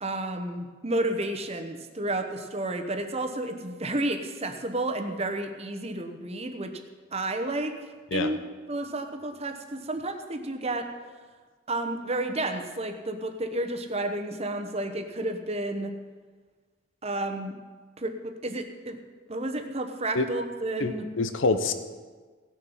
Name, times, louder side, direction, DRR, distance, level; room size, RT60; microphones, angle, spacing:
voice 1, 0.0-6.8 7.1-7.8 8.1-8.4 8.7-10.9 11.7-15.9 17.0-17.5 18.0-19.0 19.3-21.1, right 1 dB, 30° right, 5 dB, 1.0 m, -31 dB
voice 2, 20.8-21.7, left 3 dB, 70° left, 10 dB, 0.8 m, -26 dB
17.5 x 7.0 x 5.6 m, 1.4 s
head